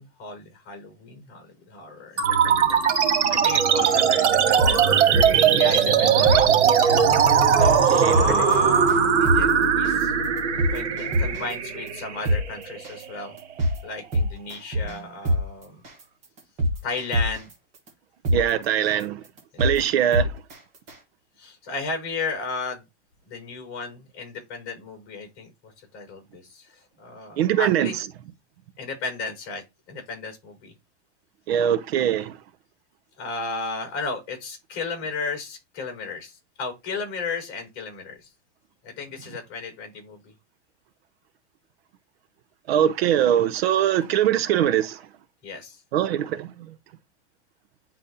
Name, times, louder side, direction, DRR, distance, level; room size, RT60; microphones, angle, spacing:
voice 1, 0.0-2.8 3.3-4.8 5.6-6.3 7.5-10.1 10.7-13.4 13.8-15.8 16.8-17.5 19.5-19.7 21.4-22.8 23.3-28.0 28.8-30.7 33.2-38.3 38.8-40.3 45.4-45.8, left 3 dB, 35° left, 4.2 m, -34 dB
sound 1, 2.2-13.1, right 7 dB, 85° right, 1.9 m, -20 dB
sound 2, 3.8-4.0 4.4-5.5 5.9-6.0 6.3-6.4 6.8-7.0 7.4-7.8 8.1-8.6 8.9-9.0 9.3-9.4 9.8-10.0 10.4-11.5 11.9-12.0 12.3-12.4 12.8-13.0 13.4-13.8 14.1-15.0 15.3-15.4 15.8-16.0 16.4-17.5 17.9-18.0 18.2-18.4 18.8-19.0 19.4-19.8 20.1-20.6 20.9-21.0, equal, 20° right, 1.3 m, -23 dB
voice 2, 7.9-8.5 18.3-19.2 19.6-20.4 27.4-27.9 31.5-32.4 42.7-45.1 45.9-46.7, right 10 dB, 60° right, 0.7 m, -22 dB
9.8 x 4.0 x 2.8 m
supercardioid pair, 170°, 34 cm